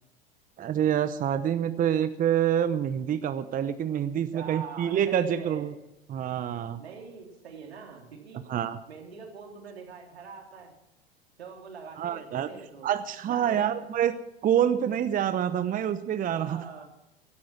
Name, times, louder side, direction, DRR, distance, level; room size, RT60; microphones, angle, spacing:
voice 1, 0.6-5.7 6.1-6.8 8.5-8.8 12.0-12.5 12.8-14.1 14.4-16.6, right 9 dB, 25° right, 11 dB, 0.9 m, -27 dB
voice 2, 4.3-5.7 6.8-8.4 8.9-10.7 11.4-12.9 13.2-13.9 16.3-16.8, right 5 dB, 80° right, 2 dB, 3.2 m, -43 dB
16.5 x 11.5 x 5.9 m, 0.84 s
hypercardioid pair, 90°, 31 cm